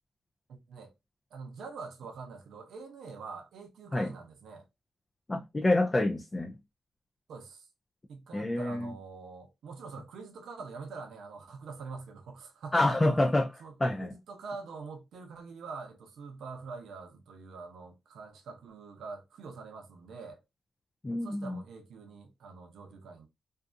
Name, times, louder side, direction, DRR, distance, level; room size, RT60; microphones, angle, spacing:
voice 1, 0.5-0.9 1.3-4.6 7.3-7.7 8.1-13.1 13.6-20.4 21.2-23.3, right 4 dB, 85° right, 0.6 m, -45 dB
voice 2, 5.3-6.6 8.3-8.9 12.7-13.5 13.8-14.1 21.0-21.6, left 2 dB, 25° left, 0.3 m, -27 dB
2.5 x 2.3 x 2.5 m
cardioid pair, 85°, 0 cm